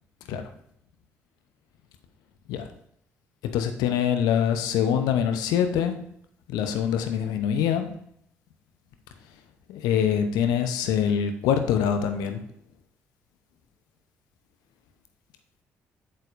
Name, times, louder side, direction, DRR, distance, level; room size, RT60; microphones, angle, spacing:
voice 1, 3.5-5.9 6.5-7.9 9.7-12.4, left 8 dB, 70° left, 7 dB, 0.8 m, -24 dB
8.0 x 6.8 x 2.6 m, 0.70 s
figure-of-eight pair, 45°, 7 cm